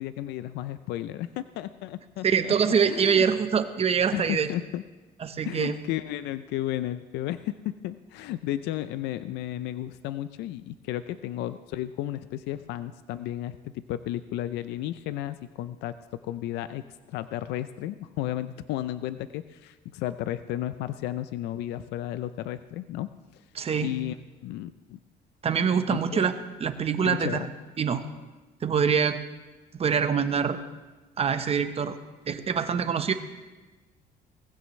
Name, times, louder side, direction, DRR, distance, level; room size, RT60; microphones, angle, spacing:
voice 1, 0.0-2.5 2.9-3.3 4.1-4.8 5.4-23.4 23.8-24.2 24.4-25.0 25.9-26.3 27.1-27.5, left 13 dB, 85° left, 13 dB, 0.5 m, -33 dB
voice 2, 2.2-4.5 5.2-5.8 23.5-23.9 25.4-26.3 26.6-27.5 27.8-28.0 28.6-29.2 29.8-30.6 31.2-32.0 32.3-33.1, right 6 dB, 35° right, 9 dB, 1.0 m, -24 dB
19.0 x 15.5 x 3.2 m, 1.2 s
cardioid pair, 110°, 17 cm